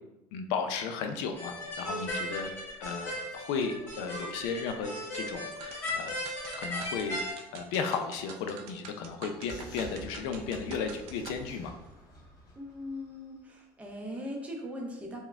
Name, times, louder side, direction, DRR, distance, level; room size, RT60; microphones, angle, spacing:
voice 1, 0.3-2.5 2.8-6.2 6.6-11.7, left 5 dB, 75° left, 6 dB, 0.4 m, -34 dB
sound 1, 1.4-7.3, left 1 dB, 25° left, 1.1 m, -37 dB
sound 2, 5.5-11.4, right 6 dB, 65° right, 0.4 m, -47 dB
Vehicle, 9.4-13.4, left 1 dB, 45° left, 1.3 m, -49 dB
voice 2, 12.6-15.2, left 1 dB, 15° right, 0 dB, 0.6 m, -39 dB
4.5 x 2.1 x 3.4 m, 0.95 s
cardioid pair, 160°, 10 cm